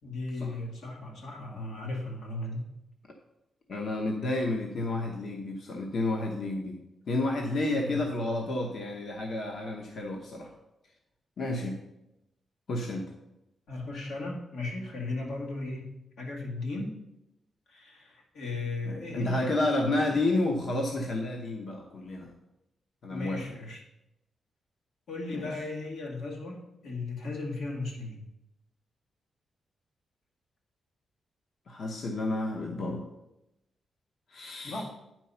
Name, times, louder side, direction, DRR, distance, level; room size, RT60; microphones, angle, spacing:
voice 1, 0.0-2.7 7.6-8.0 13.7-17.0 17.7-19.6 23.1-23.8 25.1-28.2 34.6-34.8, left 2 dB, 85° left, -1 dB, 2.0 m, -36 dB
voice 2, 3.7-6.8 7.1-10.5 11.4-11.8 12.7-13.1 18.8-22.3 23.0-23.4 25.3-25.5 31.7-33.0 34.3-34.8, left 2 dB, 50° left, 1 dB, 0.8 m, -30 dB
9.7 x 4.5 x 5.5 m, 0.90 s
wide cardioid pair, 165°, 0 cm